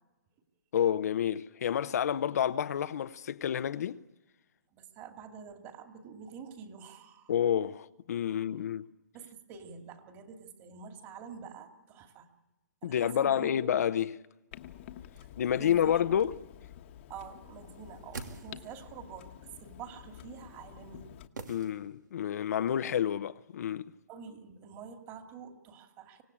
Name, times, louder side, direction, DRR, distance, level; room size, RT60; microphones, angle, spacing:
voice 1, 0.7-4.0 7.3-8.9 12.8-14.2 15.4-16.4 21.5-23.9, left 9 dB, 60° left, 0.8 m, -29 dB
voice 2, 4.7-7.3 8.3-8.6 9.1-12.3 12.8-13.5 15.6-16.2 17.1-21.1 24.1-26.2, right 6 dB, 25° right, 2.7 m, -47 dB
Clock, 14.5-21.3, left 11 dB, 40° left, 1.3 m, -50 dB
sound 1, 17.8-19.0 21.4-22.3 22.5-22.6, right 4 dB, 85° right, 2.7 m, -45 dB
25.0 x 18.0 x 8.7 m
hypercardioid pair, 145°, 10 cm